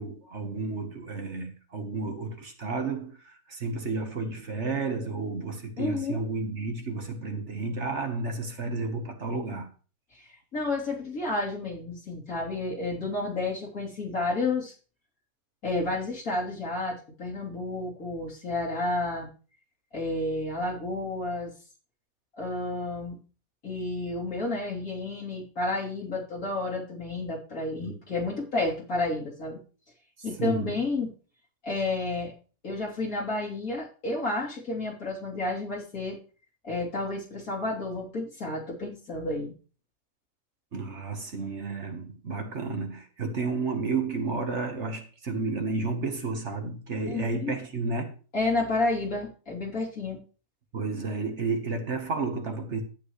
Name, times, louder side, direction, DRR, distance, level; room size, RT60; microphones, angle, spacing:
voice 1, 0.0-9.7 27.8-27.9 30.4-30.8 40.7-48.1 50.7-52.8, right 3 dB, 50° right, 1.6 m, -32 dB
voice 2, 5.8-6.2 10.1-14.7 15.6-19.3 19.9-21.5 22.4-23.2 23.6-29.6 30.2-31.1 31.6-32.3 32.6-36.2 36.6-39.5 47.1-47.5 48.3-50.2, left 2 dB, 65° left, 3.8 m, -31 dB
12.0 x 9.1 x 3.2 m
omnidirectional pair, 1.6 m